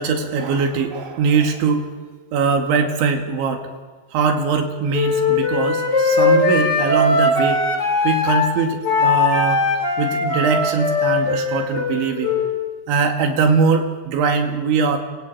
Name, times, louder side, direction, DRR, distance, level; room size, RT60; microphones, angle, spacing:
voice 1, 0.0-1.9 2.3-3.7 4.1-7.6 8.0-9.6 10.0-12.3 12.9-15.0, right 5 dB, 75° right, 3 dB, 4.4 m, -21 dB
Wind instrument woodwind instrument, 4.9-8.5 8.8-12.6, left 3 dB, 25° left, 3.7 m, -19 dB
28.5 x 22.0 x 9.0 m, 1.4 s
omnidirectional pair, 5.4 m